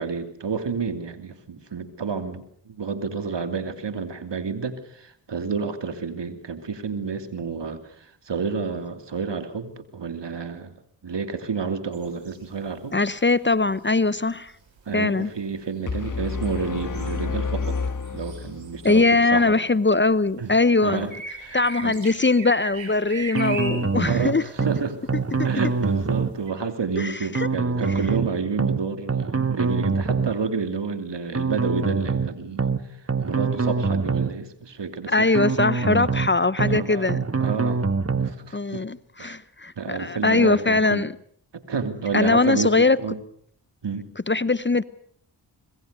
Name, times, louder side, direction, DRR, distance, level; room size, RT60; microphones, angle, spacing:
voice 1, 0.0-10.7 11.0-13.0 14.9-17.8 18.1-19.6 20.4-20.5 20.8-21.1 21.4-22.0 24.0-25.0 25.4-32.7 33.2-35.5 36.7-37.1 37.4-37.8 38.2-38.8 39.2-39.3 39.8-41.0 41.5-43.2 43.8-44.1, right 5 dB, 65° right, 9 dB, 2.9 m, -30 dB
sound 1, 11.9-12.9 13.2-19.5 19.8-26.5, right 4 dB, 85° right, 5.9 m, -40 dB
voice 2, 12.9-14.5 14.9-15.3 18.8-21.0 21.5-24.4 25.4-25.5 27.0-27.5 35.1-37.2 38.5-41.1 42.1-43.0 44.3-44.8, left 3 dB, 25° left, 18 dB, 0.9 m, -21 dB
sound 2, 15.9-18.9, left 4 dB, 45° left, 1.6 m, -29 dB
sound 3, 23.3-24.3 24.6-24.8 25.1-26.3 27.3-28.3 28.6-28.8 29.1-30.3 31.3-32.3 32.6-32.8 33.1-34.3 35.3-36.3 36.6-36.8 37.1-38.3, right 4 dB, 30° right, 1.6 m, -24 dB
25.5 x 21.5 x 6.7 m, 0.63 s
cardioid pair, 40°, 45 cm